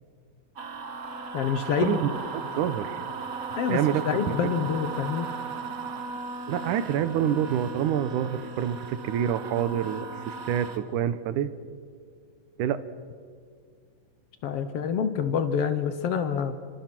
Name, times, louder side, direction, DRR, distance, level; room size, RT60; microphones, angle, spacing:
sound 1, 0.6-10.8, right 4 dB, 40° right, 1.3 m, -36 dB
voice 1, 1.3-2.0 3.6-3.8 4.0-5.3 14.4-16.5, left 7 dB, 80° left, 9 dB, 1.3 m, -27 dB
voice 2, 2.3-3.0 3.7-4.4 6.5-11.5 12.6-12.8, right 9 dB, 70° right, 13 dB, 2.3 m, -27 dB
29.0 x 26.0 x 6.1 m, 2.2 s
omnidirectional pair, 4.1 m